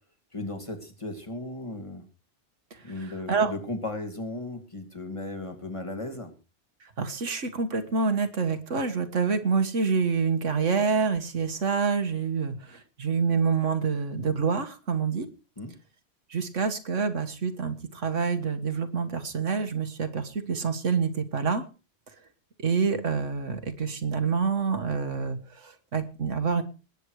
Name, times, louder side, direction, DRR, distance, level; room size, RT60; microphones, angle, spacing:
voice 1, 0.3-2.0 2.8-6.3 15.6-15.7, left 2 dB, 25° left, 4 dB, 2.6 m, -36 dB
voice 2, 2.7-3.5 6.8-15.3 16.3-21.6 22.6-26.6, right 5 dB, 85° right, 9 dB, 1.9 m, -27 dB
20.0 x 8.4 x 4.8 m, 0.34 s
omnidirectional pair, 1.2 m